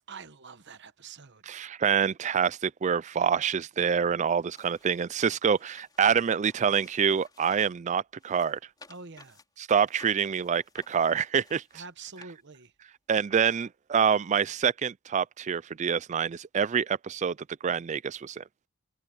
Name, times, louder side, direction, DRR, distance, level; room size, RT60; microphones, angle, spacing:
voice 1, 0.0-1.5 8.9-9.4 11.7-12.7, right 4 dB, 55° right, 1.1 m, -46 dB
voice 2, 1.5-8.6 9.6-11.6 13.1-17.4 17.6-18.4, right 7 dB, 35° right, 0.3 m, -26 dB
sound 1, 4.2-7.8 8.2-12.8 13.5-13.6, left 3 dB, 20° left, 4.2 m, -57 dB
head